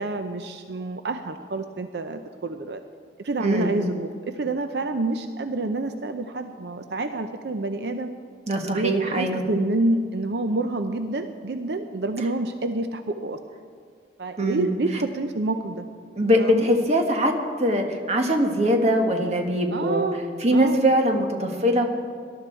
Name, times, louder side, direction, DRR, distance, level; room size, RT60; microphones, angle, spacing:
voice 1, 0.0-2.8 3.2-8.1 8.7-13.4 14.2-15.9 16.4-16.7 19.7-20.2 20.5-20.9, right 2 dB, 75° right, 8 dB, 0.6 m, -28 dB
voice 2, 3.4-3.7 8.5-9.4 14.4-15.0 16.2-20.1 20.4-21.9, equal, 40° right, 3 dB, 1.5 m, -22 dB
18.5 x 12.0 x 4.5 m, 2.1 s
head